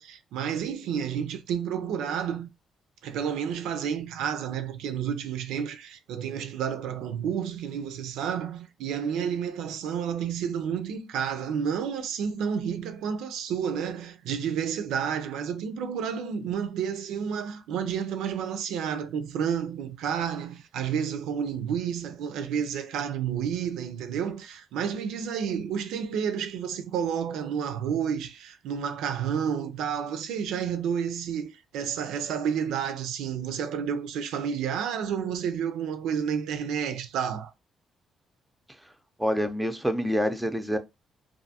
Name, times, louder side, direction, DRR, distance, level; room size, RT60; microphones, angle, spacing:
voice 1, 0.0-2.5 3.0-37.5, right 8 dB, 90° right, 0.3 m, -30 dB
voice 2, 39.2-40.8, equal, 5° right, 0.5 m, -26 dB
2.5 x 2.3 x 2.7 m
cardioid pair, 90°, 0 cm